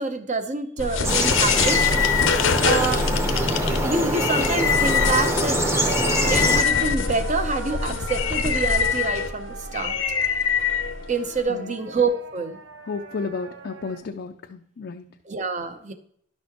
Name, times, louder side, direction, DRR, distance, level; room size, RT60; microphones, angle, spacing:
voice 1, 0.0-1.8 2.6-3.1 3.8-5.6 6.3-10.0 11.1-12.6 15.3-15.9, right 3 dB, 40° right, 9 dB, 0.7 m, -26 dB
sound 1, 0.8-11.4, left 6 dB, 80° left, 0.7 m, -24 dB
sound 2, 1.0-6.6, right 1 dB, 15° right, 0.9 m, -24 dB
sound 3, 1.2-14.0, right 5 dB, 75° right, 0.8 m, -40 dB
voice 2, 12.8-15.1, left 4 dB, 55° left, 4 dB, 0.4 m, -32 dB
11.5 x 6.2 x 2.9 m, 0.66 s
head